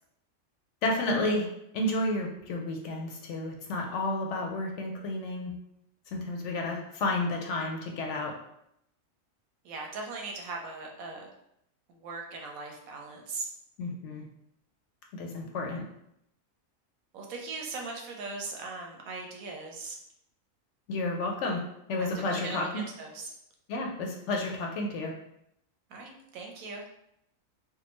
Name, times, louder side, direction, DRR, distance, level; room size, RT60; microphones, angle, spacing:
voice 1, 0.8-1.5 1.7-5.5 6.1-8.3 13.8-14.2 15.1-15.8 20.9-21.6 21.9-22.8 23.7-25.1, left 2 dB, 65° left, 1 dB, 0.8 m, -31 dB
voice 2, 9.6-11.3 11.9-13.5 17.1-20.0 22.0-23.3 25.9-26.8, right 3 dB, 85° right, 1 dB, 1.1 m, -39 dB
3.5 x 2.2 x 3.0 m, 0.77 s
omnidirectional pair, 1.4 m